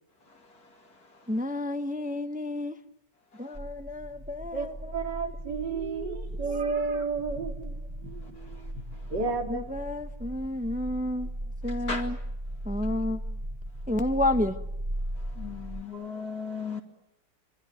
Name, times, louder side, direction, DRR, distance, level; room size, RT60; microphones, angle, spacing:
voice 1, 1.3-2.8 3.4-4.9 9.5-11.3 11.6-12.2 12.6-13.2 13.9-14.6, left 1 dB, 5° right, 0.8 m, -30 dB
sound 1, 3.5-15.8, right 1 dB, 25° right, 2.6 m, -37 dB
voice 2, 4.5-9.6, right 4 dB, 70° right, 3.7 m, -32 dB
voice 3, 15.4-16.8, left 5 dB, 60° left, 3.0 m, -35 dB
26.0 x 23.5 x 9.2 m
omnidirectional pair, 1.9 m